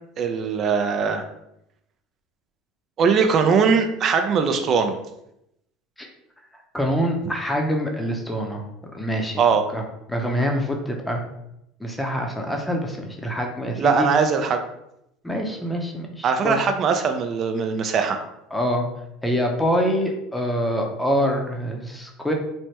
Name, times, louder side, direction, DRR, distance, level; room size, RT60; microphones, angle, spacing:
voice 1, 0.2-1.3 3.0-5.0 9.4-9.6 13.8-14.6 16.2-18.2, right 5 dB, 45° right, 6 dB, 0.4 m, -20 dB
voice 2, 6.7-9.4 9.7-9.8 10.1-11.2 11.8-14.1 15.2-16.6 18.5-18.8 19.2-22.3, equal, 5° left, 1 dB, 0.6 m, -25 dB
3.2 x 2.1 x 2.8 m, 0.82 s
supercardioid pair, 90°, 0 cm